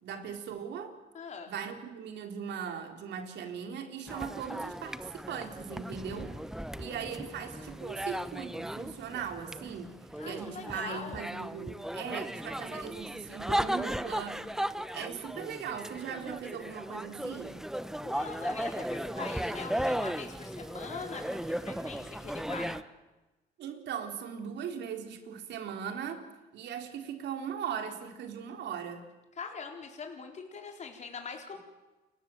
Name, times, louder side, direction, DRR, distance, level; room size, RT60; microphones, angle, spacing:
voice 1, 0.0-1.0 1.5-6.3 6.8-9.9 10.2-14.5 14.9-17.6 23.6-26.3 26.5-29.1, right 7 dB, 75° right, 5 dB, 3.9 m, -39 dB
voice 2, 1.1-1.5 6.7-7.2 10.2-11.3 18.0-22.8 29.4-31.6, left 5 dB, 40° left, 3 dB, 4.2 m, -42 dB
sound 1, 4.1-22.8, equal, 5° right, 0.9 m, -36 dB
29.5 x 22.5 x 7.9 m, 1.1 s
cardioid pair, 125°, 18 cm